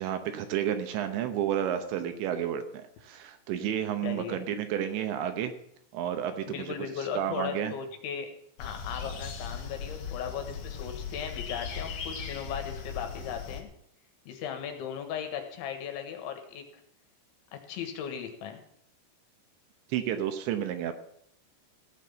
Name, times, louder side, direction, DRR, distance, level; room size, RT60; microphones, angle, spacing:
voice 1, 0.0-5.5 5.9-7.7 19.9-20.9, right 10 dB, 75° right, 8 dB, 3.0 m, -31 dB
voice 2, 4.0-4.4 6.5-8.3 8.6-13.7 14.3-16.6 17.5-18.6, left 8 dB, 75° left, 5 dB, 3.7 m, -37 dB
sound 1, 8.6-13.6, left 6 dB, 60° left, 2.4 m, -38 dB
15.0 x 6.1 x 8.7 m, 0.71 s
omnidirectional pair, 5.6 m